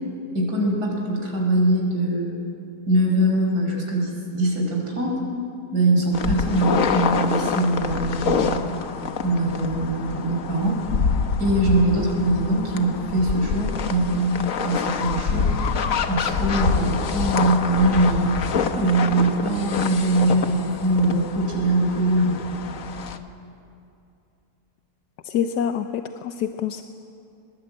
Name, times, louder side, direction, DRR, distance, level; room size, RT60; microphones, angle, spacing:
voice 1, 0.3-2.3 2.9-5.2 5.7-8.8 9.2-10.8 11.4-15.5 16.1-18.4 18.8-22.4, right 1 dB, 85° right, -1 dB, 5.7 m, -22 dB
sound 1, 6.1-23.2, left 5 dB, 60° left, 1.4 m, -26 dB
voice 2, 25.2-26.8, left 8 dB, 85° left, 8 dB, 1.3 m, -26 dB
24.0 x 20.5 x 8.7 m, 2.6 s
omnidirectional pair, 1.7 m